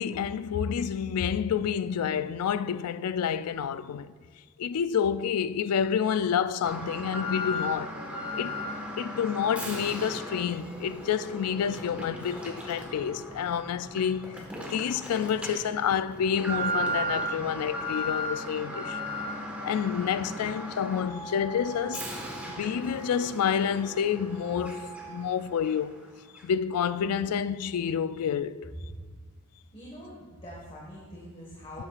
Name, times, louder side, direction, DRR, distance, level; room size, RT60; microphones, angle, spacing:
voice 1, 0.0-4.1 4.6-7.9 8.3-8.6 9.0-19.0 19.6-22.1 22.6-26.0 26.4-28.6, left 8 dB, 80° left, 0.4 m, -29 dB
Alarm, 6.6-25.3 25.6-25.7 26.4-26.5, equal, 5° right, 1.5 m, -36 dB
Wind instrument woodwind instrument, 20.3-25.6, right 5 dB, 55° left, 2.7 m, -46 dB
voice 2, 29.7-31.9, equal, 25° left, 1.6 m, -44 dB
13.0 x 8.6 x 2.5 m
head